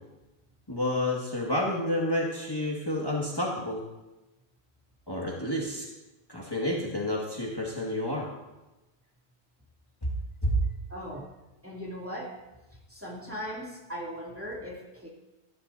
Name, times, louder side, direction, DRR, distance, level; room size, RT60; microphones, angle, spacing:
voice 1, 0.7-3.8 5.1-5.9 6.3-8.3 10.4-10.6, left 1 dB, 20° left, -3 dB, 2.0 m, -29 dB
voice 2, 10.9-11.3 11.6-12.4 12.9-15.1, equal, 10° right, -4 dB, 2.7 m, -38 dB
21.0 x 14.0 x 2.7 m, 1.0 s
omnidirectional pair, 1.1 m